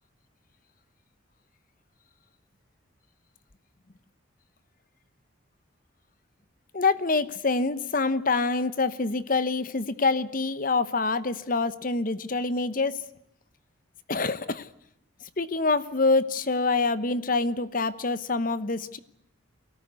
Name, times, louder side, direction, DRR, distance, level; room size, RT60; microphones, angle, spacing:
voice 1, 6.7-13.0 14.1-14.7 15.4-19.0, left 3 dB, 45° left, 15 dB, 1.0 m, -26 dB
24.0 x 18.0 x 9.6 m, 0.75 s
head